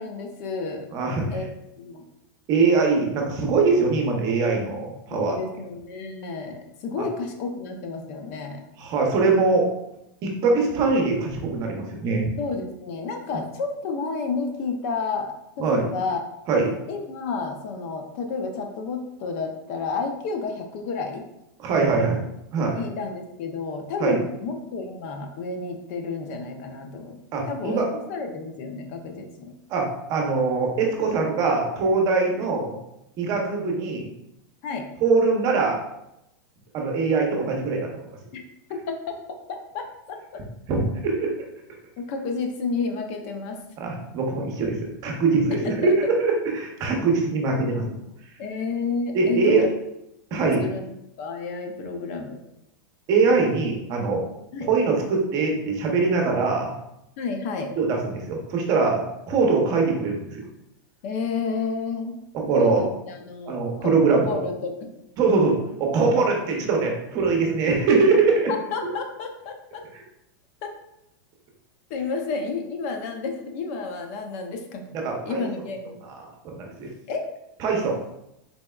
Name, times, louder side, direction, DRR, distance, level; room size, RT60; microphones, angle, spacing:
voice 1, 0.0-0.9 1.3-2.0 5.1-8.6 12.4-16.2 16.9-21.2 22.7-27.2 27.5-29.5 32.4-32.5 34.6-34.9 38.3-38.4 38.9-39.2 39.5-40.4 42.0-43.6 45.5-45.9 48.4-49.7 50.4-50.9 51.2-52.4 54.5-54.7 57.2-57.7 61.0-62.1 62.6-64.9 68.5-69.8 70.6-70.7 71.9-74.8 75.3-76.0 77.1-77.3, left 4 dB, 45° left, 4 dB, 0.6 m, -31 dB
voice 2, 0.9-1.3 2.5-5.4 8.8-9.7 10.2-12.2 15.6-15.8 16.5-16.8 21.6-22.2 22.5-22.8 24.0-24.1 27.3-27.9 29.7-32.7 33.2-34.1 35.0-35.8 36.7-37.9 40.7-41.3 43.8-47.9 49.1-49.6 50.3-50.6 53.1-54.3 54.7-56.7 57.8-59.0 59.3-60.4 62.3-62.9 63.5-64.4 65.2-68.5 69.9-70.0 74.9-75.5 76.0-76.9 77.6-78.0, right 4 dB, 35° right, 1 dB, 0.8 m, -22 dB
4.1 x 3.3 x 2.3 m, 0.84 s
supercardioid pair, 150°, 11 cm